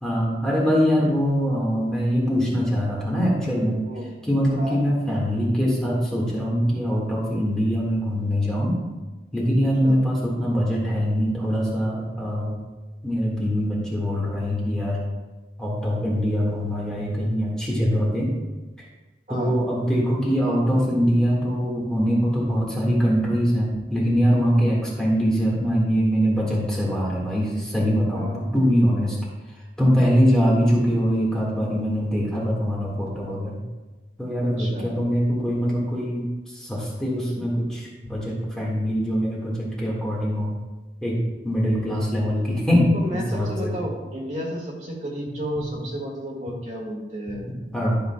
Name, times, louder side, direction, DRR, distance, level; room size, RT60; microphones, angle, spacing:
voice 1, 0.0-3.8 4.2-8.8 9.3-12.6 13.0-15.0 15.6-18.3 19.3-29.2 29.8-33.6 34.2-36.3 36.5-40.5 41.0-41.2 41.4-43.7 47.7-48.0, equal, 5° left, -5 dB, 1.7 m, -23 dB
voice 2, 34.6-34.9 42.9-47.4, equal, 45° right, -3 dB, 2.0 m, -32 dB
12.5 x 6.5 x 2.3 m, 1.2 s
head